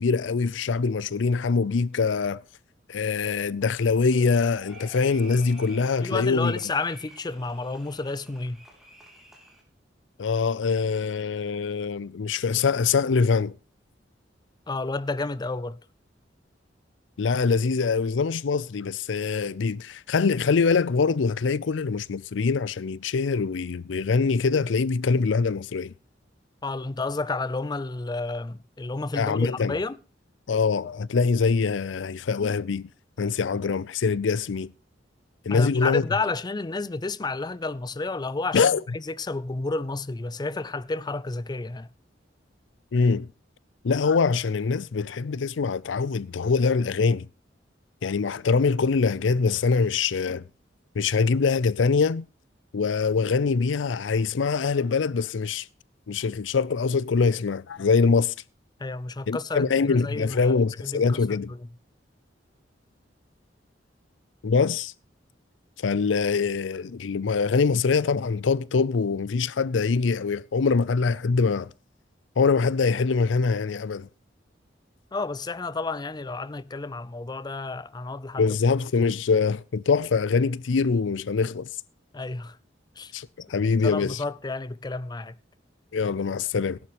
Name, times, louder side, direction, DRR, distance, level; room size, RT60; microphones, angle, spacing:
voice 1, 0.0-2.4 2.9-6.6 10.2-13.5 17.2-25.9 29.2-29.8 30.5-32.9 33.2-34.7 35.4-36.0 38.5-38.8 42.9-43.3 43.8-47.3 48.0-50.4 50.9-52.2 52.7-55.7 56.1-58.3 59.3-61.5 64.4-64.9 65.8-71.7 72.4-74.1 78.4-81.7 83.1-84.2 85.9-86.8, left 4 dB, 80° left, 0.5 m, -24 dB
sound 1, 3.7-9.6, equal, ahead, 3.5 m, -50 dB
voice 2, 6.0-8.6 14.7-15.8 26.6-30.0 35.5-41.9 58.8-60.5 60.8-61.4 75.1-78.4 82.1-82.6 83.0-83.1 83.8-85.3, left 3 dB, 20° left, 0.5 m, -31 dB
16.5 x 11.5 x 3.1 m
head